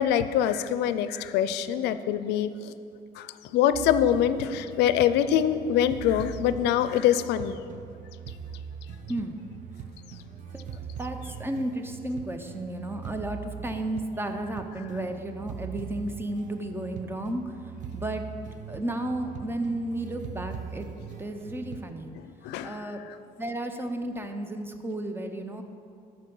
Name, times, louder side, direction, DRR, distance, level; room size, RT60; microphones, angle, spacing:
voice 1, 0.0-2.7 3.2-7.6 22.4-22.8, left 10 dB, 85° left, 12 dB, 0.4 m, -24 dB
sound 1, 3.7-21.9, right 7 dB, 50° right, 0.6 m, -41 dB
voice 2, 9.1-9.4 10.1-18.2 18.7-20.9 21.2-22.1 22.6-23.1 23.4-25.6, right 1 dB, 15° right, 6 dB, 0.7 m, -33 dB
12.5 x 4.4 x 5.4 m, 2.5 s
cardioid pair, 110°, 17 cm